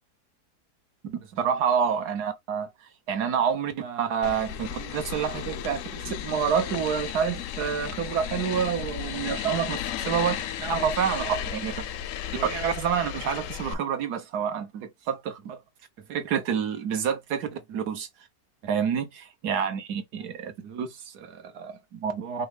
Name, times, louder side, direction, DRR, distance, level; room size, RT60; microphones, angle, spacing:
voice 1, 1.0-2.7 3.1-11.8 12.3-15.6 16.1-18.1 18.6-22.5, right 7 dB, 75° right, 1.5 m, -28 dB
sound 1, 4.2-13.7, left 10 dB, 70° left, 0.8 m, -34 dB
5.3 x 2.3 x 3.3 m
omnidirectional pair, 1.8 m